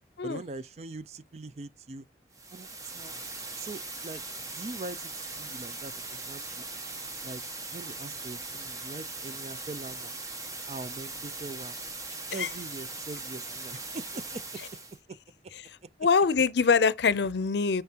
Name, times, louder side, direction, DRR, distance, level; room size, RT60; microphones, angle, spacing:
voice 1, 0.2-2.1 2.5-3.1 3.6-4.2 4.5-6.6 7.2-7.4 7.7-10.1 10.7-11.8 12.3-14.4 15.1-15.2 15.4-15.5, right 3 dB, 35° right, 0.4 m, -42 dB
sound 1, 2.3-15.0, right 3 dB, 20° right, 0.9 m, -40 dB
voice 2, 16.0-17.8, left 5 dB, 80° left, 0.5 m, -24 dB
9.4 x 4.5 x 2.8 m
head